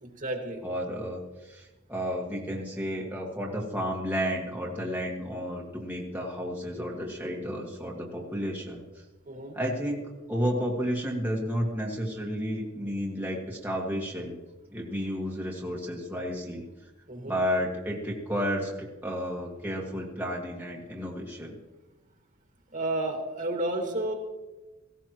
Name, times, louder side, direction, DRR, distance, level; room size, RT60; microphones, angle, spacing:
voice 1, 0.0-0.6 9.2-9.6 17.1-17.4 22.7-24.1, right 1 dB, 40° right, 2 dB, 2.1 m, -31 dB
voice 2, 0.6-8.8 9.5-14.4 14.7-16.6 17.2-21.6, equal, 10° right, -3 dB, 1.8 m, -32 dB
17.5 x 16.5 x 3.1 m, 1.1 s
head